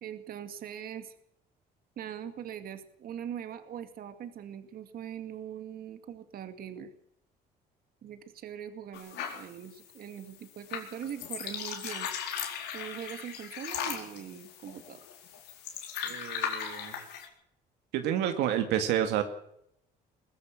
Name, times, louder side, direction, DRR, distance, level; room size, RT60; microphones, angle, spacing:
voice 1, 0.0-1.1 2.0-6.9 8.0-12.1 12.7-15.0, right 9 dB, 60° right, 9 dB, 2.3 m, -41 dB
sound 1, 8.9-17.3, left 8 dB, 85° left, 4.4 m, -38 dB
voice 2, 16.0-16.9 17.9-19.2, right 10 dB, 90° right, 6 dB, 2.2 m, -29 dB
22.0 x 15.5 x 7.7 m, 0.74 s
cardioid pair, 110°, 17 cm